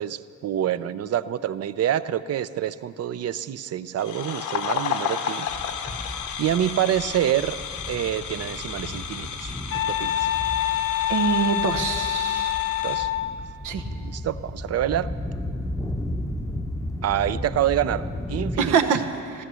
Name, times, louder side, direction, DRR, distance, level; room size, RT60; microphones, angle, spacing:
voice 1, 0.0-5.5 6.4-7.6 7.9-9.5 9.9-10.3 12.8-13.1 13.9-15.1 16.1-16.3 17.0-18.7, right 11 dB, 55° right, 14 dB, 0.6 m, -27 dB
sound 1, 4.0-13.1, left 7 dB, 75° left, 1.1 m, -33 dB
sound 2, 5.5-18.8, left 1 dB, 10° left, 0.7 m, -34 dB
sound 3, 9.7-13.3, left 12 dB, 50° left, 0.8 m, -26 dB
voice 2, 11.1-12.6 13.6-13.9 18.6-19.4, right 6 dB, 85° right, 7 dB, 1.1 m, -25 dB
14.0 x 14.0 x 6.3 m, 2.4 s
cardioid pair, 90°, 30 cm